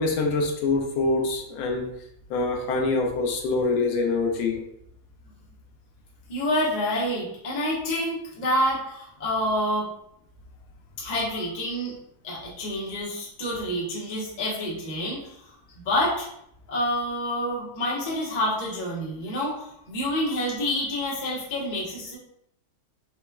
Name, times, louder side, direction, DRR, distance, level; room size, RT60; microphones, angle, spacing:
voice 1, 0.0-1.9 2.3-4.6, left 3 dB, 85° left, 2 dB, 1.4 m, -25 dB
voice 2, 6.3-9.9 11.0-11.9 12.2-15.4 15.8-16.3 16.7-22.2, left 1 dB, 45° left, -6 dB, 0.5 m, -28 dB
4.1 x 2.2 x 2.2 m, 0.74 s
omnidirectional pair, 2.2 m